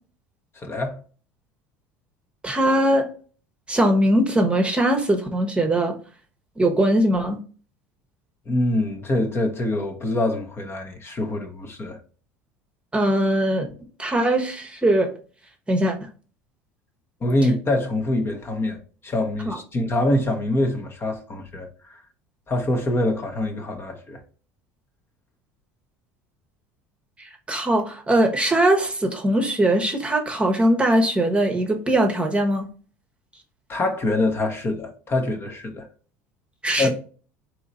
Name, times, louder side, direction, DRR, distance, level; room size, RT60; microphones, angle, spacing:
voice 1, 0.6-1.0 8.5-12.0 17.2-18.8 19.0-22.0 22.5-24.2 33.7-35.9 36.8-36.9, left 1 dB, 30° left, 0.9 m, -24 dB
voice 2, 2.4-3.1 3.7-5.9 6.6-7.4 12.9-13.7 14.0-15.1 15.7-16.0 19.4-19.6 27.5-32.7 36.6-36.9, right 1 dB, 15° right, 1.0 m, -20 dB
3.8 x 3.1 x 4.0 m
supercardioid pair, 95°, 8 cm